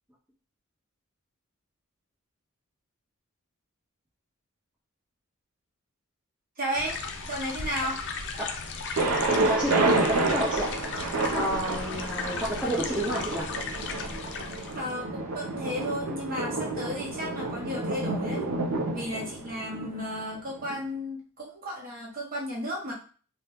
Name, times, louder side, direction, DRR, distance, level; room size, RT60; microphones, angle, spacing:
voice 1, 6.6-7.0 7.3-8.0 14.7-18.5 18.9-22.9, equal, 40° right, -3 dB, 1.1 m, -33 dB
sound 1, 6.7-14.9, left 4 dB, 55° left, 0.4 m, -36 dB
Thunder, 9.0-20.8, right 2 dB, 70° right, 0.6 m, -29 dB
voice 2, 9.5-10.7 11.3-13.5, equal, 5° right, -6 dB, 0.6 m, -30 dB
2.8 x 2.3 x 3.4 m, 0.39 s
head